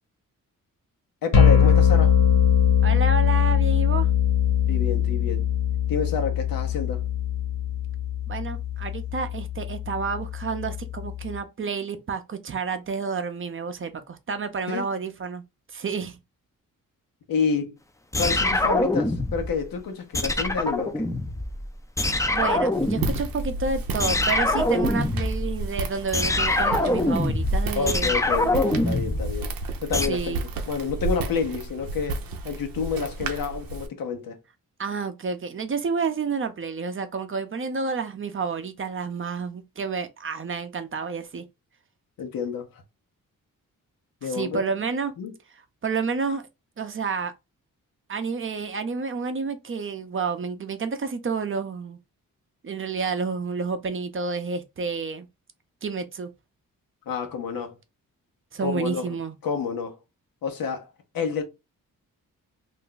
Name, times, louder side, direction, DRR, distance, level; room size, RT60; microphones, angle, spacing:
voice 1, 1.2-2.2 4.7-5.5 5.9-7.0 14.7-14.9 17.3-17.8 18.2-21.1 27.7-29.5 29.8-30.4 30.7-34.4 42.2-42.7 44.2-44.6 45.2-45.3 57.1-57.7 58.6-59.2 59.4-60.0 60.4-60.9 61.1-61.4, left 5 dB, 80° left, 0.9 m, -29 dB
sound 1, 1.3-11.4, left 9 dB, 55° left, 1.1 m, -22 dB
voice 2, 2.8-4.1 8.3-15.4 15.7-16.2 22.3-28.1 30.1-30.4 34.8-41.4 44.2-45.1 45.8-46.5 46.8-47.3 48.1-52.0 52.6-55.3 55.8-56.3 58.5-59.4, right 5 dB, 35° right, 0.6 m, -30 dB
sound 2, 18.1-19.6 20.1-21.7 22.0-23.6 24.0-30.1, left 2 dB, 10° left, 0.4 m, -24 dB
Walk footsteps, 22.7-33.9, right 3 dB, 85° right, 0.6 m, -32 dB
2.5 x 2.2 x 3.8 m
cardioid pair, 70°, 34 cm